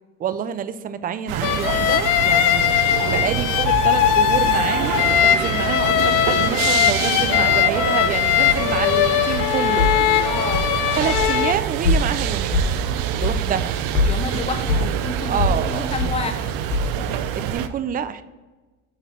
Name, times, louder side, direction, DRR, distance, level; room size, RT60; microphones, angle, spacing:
voice 1, 0.2-9.9 11.0-12.7 13.2-13.8 15.2-16.0 17.3-18.2, right 8 dB, 25° right, 13 dB, 0.4 m, -27 dB
sound 1, 1.3-17.7, right 10 dB, 65° right, 0.6 m, -26 dB
sound 2, 1.4-11.5, left 11 dB, 55° left, 0.6 m, -20 dB
sound 3, 8.0-8.1 8.4-9.0 9.3-9.5 9.8-10.1 10.5-10.8 11.1-11.5 11.8-12.2 12.5-12.9 13.2-13.4 13.7-13.8 13.9-14.9 15.4-15.6 16.0-16.2 16.7-17.1 17.5-17.6, left 3 dB, 75° left, 1.3 m, -23 dB
voice 2, 10.2-10.7 14.0-16.6, left 4 dB, 15° left, 8 dB, 0.7 m, -30 dB
5.7 x 3.9 x 5.9 m, 1.2 s
supercardioid pair, 100°, 37 cm